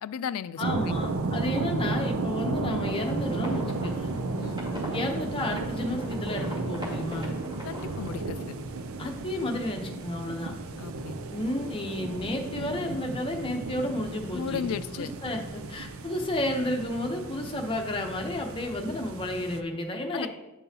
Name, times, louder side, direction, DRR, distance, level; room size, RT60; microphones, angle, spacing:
voice 1, 0.0-0.6 4.4-4.6 7.6-8.4 10.8-11.2 14.3-15.1 20.1-20.3, left 7 dB, 85° left, 17 dB, 0.3 m, -34 dB
voice 2, 0.6-4.1 4.9-7.3 9.0-10.5 11.3-20.3, left 1 dB, 25° left, 2 dB, 0.9 m, -32 dB
sound 1, 0.6-19.6, right 3 dB, 75° right, 0.5 m, -34 dB
sound 2, 2.8-8.1, left 1 dB, 25° right, 2.4 m, -40 dB
11.0 x 5.4 x 2.8 m, 1.0 s
head